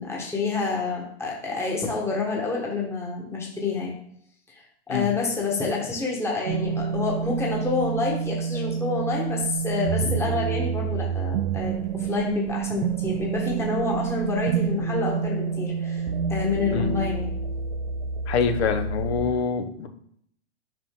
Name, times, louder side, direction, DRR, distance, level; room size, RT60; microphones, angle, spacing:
voice 1, 0.0-3.9 4.5-16.0 16.3-17.3, left 4 dB, 10° left, -2 dB, 1.2 m, -28 dB
sound 1, 6.5-19.3, right 6 dB, 60° right, 0.7 m, -28 dB
voice 2, 18.3-19.9, left 6 dB, 70° left, 7 dB, 1.1 m, -25 dB
5.5 x 5.1 x 3.7 m, 0.68 s
hypercardioid pair, 140°, 33 cm